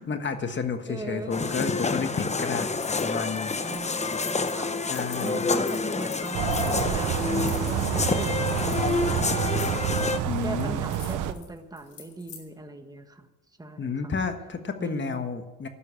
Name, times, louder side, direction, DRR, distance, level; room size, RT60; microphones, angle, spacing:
voice 1, 0.0-3.5 4.9-5.4 10.2-10.8 13.8-15.7, left 5 dB, 40° left, 7 dB, 1.5 m, -31 dB
voice 2, 0.9-1.4 3.6-4.7 5.2-9.8 10.4-13.3 13.6-14.2 14.8-15.2, right 2 dB, 10° right, 6 dB, 1.6 m, -39 dB
sound 1, 1.3-10.2, left 4 dB, 25° left, 0.9 m, -28 dB
sound 2, 2.8-3.1 3.4-12.4, left 7 dB, 80° left, 3.8 m, -45 dB
sound 3, 6.3-11.3, right 10 dB, 85° right, 0.9 m, -28 dB
12.0 x 9.9 x 8.5 m, 1.1 s
cardioid pair, 90°, 30 cm